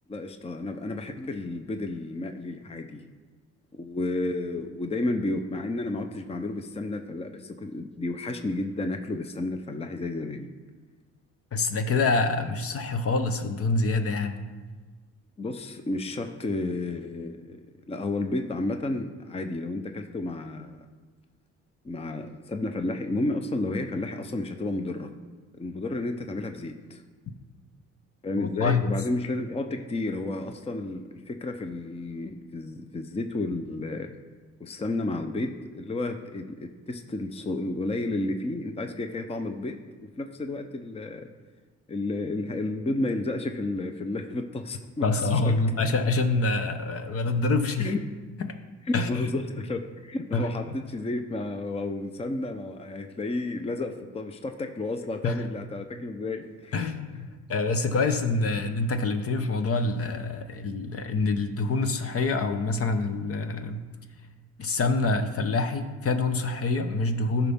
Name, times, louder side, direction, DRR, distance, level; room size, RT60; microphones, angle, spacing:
voice 1, 0.1-3.0 3.7-10.5 15.4-17.6 17.9-20.8 21.8-25.1 25.6-27.0 28.2-34.1 34.6-39.8 40.2-41.3 41.9-45.5 47.8-48.0 49.1-56.9, left 2 dB, 20° left, 6 dB, 0.7 m, -32 dB
voice 2, 11.5-14.4 28.4-28.9 45.0-48.0 48.4-48.5 48.9-49.3 50.3-50.5 55.2-55.5 56.7-63.8 64.6-67.5, left 3 dB, 50° left, 8 dB, 0.9 m, -26 dB
14.0 x 5.8 x 3.6 m, 1.4 s
cardioid pair, 90°, 30 cm